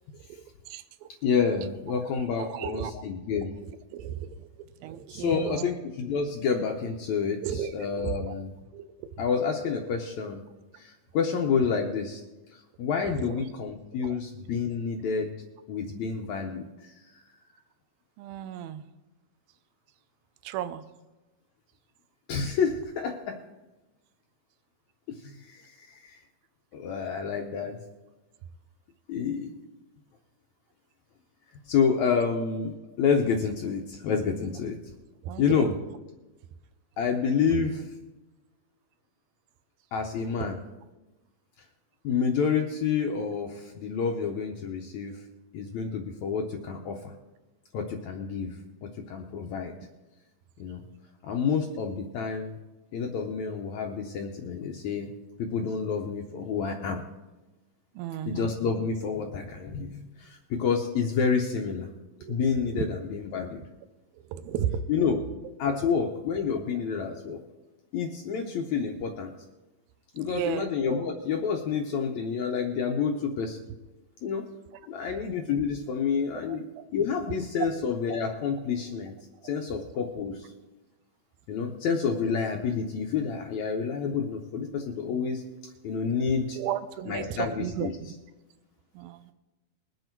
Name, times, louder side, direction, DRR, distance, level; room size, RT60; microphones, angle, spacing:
voice 1, 0.7-1.1 2.0-2.1 2.4-2.9 3.6-5.7 7.4-7.7 8.0-8.3 8.7-9.1 13.0-13.4 14.0-14.2 18.2-18.8 20.4-20.8 35.2-35.7 58.0-58.5 62.2-62.4 64.1-64.9 70.2-70.7 76.3-76.6 86.6-88.2 88.9-89.3, right 10 dB, 85° right, 12 dB, 2.5 m, -34 dB
voice 2, 1.2-3.5 5.1-8.5 9.2-10.4 10.8-12.2 12.5-15.3 15.7-16.9 22.3-23.3 25.2-26.2 26.7-27.8 29.1-29.5 31.7-34.8 35.4-35.8 37.0-37.8 39.9-40.6 42.0-45.1 45.5-47.0 47.7-48.5 48.8-49.7 50.6-50.8 51.2-52.5 52.9-55.1 55.4-57.0 58.3-61.9 62.3-63.6 64.9-65.2 65.6-67.4 67.9-69.3 70.1-73.6 74.2-74.5 74.9-76.6 76.9-79.1 79.4-80.5 81.5-85.4 85.8-86.6 87.1-87.9, left 6 dB, 75° left, 2 dB, 1.7 m, -29 dB
20.5 x 8.0 x 4.5 m, 1.1 s
omnidirectional pair, 4.2 m